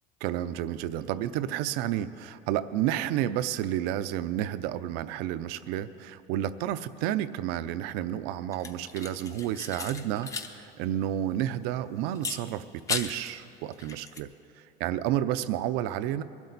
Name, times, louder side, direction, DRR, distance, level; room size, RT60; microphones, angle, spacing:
voice 1, 0.2-14.3 14.8-16.2, right 12 dB, 75° right, 13 dB, 0.6 m, -31 dB
sound 1, 8.5-10.5 10.8-10.9 12.1-13.3 13.7-14.2, left 4 dB, 20° left, 0.7 m, -36 dB
22.0 x 12.0 x 4.1 m, 2.7 s
cardioid pair, 155°, 17 cm